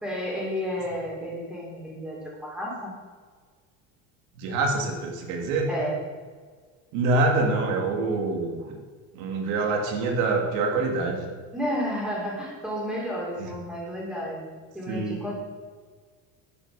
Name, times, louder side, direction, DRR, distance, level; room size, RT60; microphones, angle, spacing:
voice 1, 0.0-2.9 5.7-5.9 11.5-14.4 14.7-15.3, equal, ahead, -4 dB, 3.7 m, -31 dB
voice 2, 4.4-5.7 6.9-8.8 9.1-11.3 14.9-15.2, right 3 dB, 65° right, 2 dB, 3.0 m, -25 dB
10.0 x 9.4 x 6.9 m, 1.5 s
cardioid pair, 170°, 31 cm